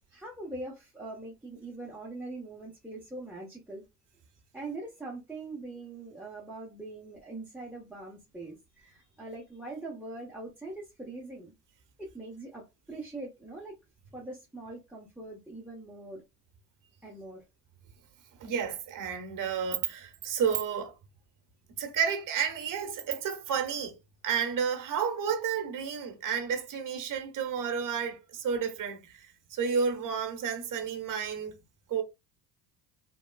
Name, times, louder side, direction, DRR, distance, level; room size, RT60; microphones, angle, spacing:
voice 1, 0.1-3.8 4.5-11.5 12.0-13.8 14.1-16.2 17.0-17.4, right 2 dB, 5° right, 1.0 m, -42 dB
voice 2, 18.4-20.9 21.8-24.0 24.2-31.6 31.9-32.0, right 7 dB, 45° right, 1.1 m, -31 dB
3.3 x 2.3 x 2.3 m
supercardioid pair, 70°, 45 cm